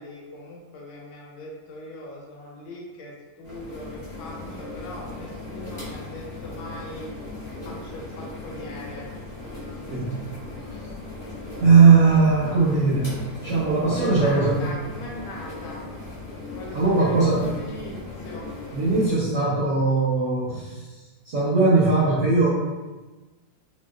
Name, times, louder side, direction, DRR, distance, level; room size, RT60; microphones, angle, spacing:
voice 1, 0.0-7.1 7.6-9.1 13.8-15.9 16.5-18.5, left 1 dB, 80° left, -2 dB, 1.5 m, -40 dB
sound 1, 3.4-19.1, left 2 dB, 40° left, 1.0 m, -37 dB
voice 2, 11.6-13.1 13.4-14.7 16.7-17.5 18.7-21.0 21.2-22.5, right 4 dB, 65° right, -10 dB, 0.7 m, -19 dB
3.0 x 2.9 x 2.3 m, 1.2 s
omnidirectional pair, 2.2 m